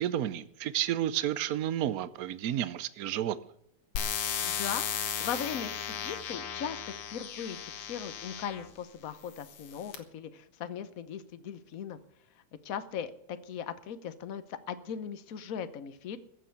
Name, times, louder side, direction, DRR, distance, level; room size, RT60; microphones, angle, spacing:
voice 1, 0.0-3.4, right 11 dB, 80° right, 0.8 m, -31 dB
sound 1, 4.0-8.7 9.4-10.0, left 8 dB, 85° left, 2.3 m, -35 dB
voice 2, 4.4-12.0 12.6-16.2, left 8 dB, 50° left, 1.1 m, -39 dB
15.0 x 6.8 x 9.4 m
omnidirectional pair, 2.4 m